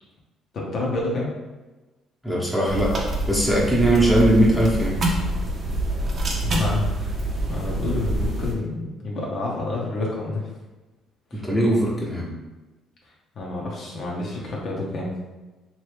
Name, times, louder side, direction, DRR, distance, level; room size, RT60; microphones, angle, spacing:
voice 1, 0.5-1.3 6.4-7.1 7.5-10.5 11.3-11.4 13.4-15.1, left 2 dB, 55° left, -3 dB, 0.8 m, -28 dB
voice 2, 2.2-2.9 3.3-5.0 11.3-12.4, right 1 dB, ahead, -6 dB, 1.1 m, -20 dB
sound 1, 2.7-8.5, right 1 dB, 45° right, 0.7 m, -26 dB
3.0 x 2.6 x 3.4 m, 1.2 s
supercardioid pair, 80°, 0 cm